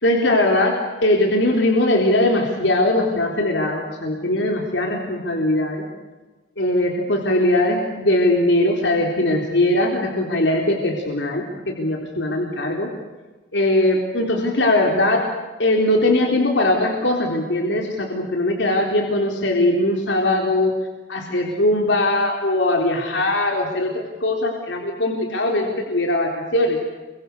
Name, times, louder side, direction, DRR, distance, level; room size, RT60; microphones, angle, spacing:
voice 1, 0.0-5.8 6.6-12.9 13.5-15.2 15.6-20.7 21.1-26.8, left 1 dB, 75° left, 1 dB, 3.9 m, -20 dB
29.5 x 24.0 x 6.8 m, 1.2 s
head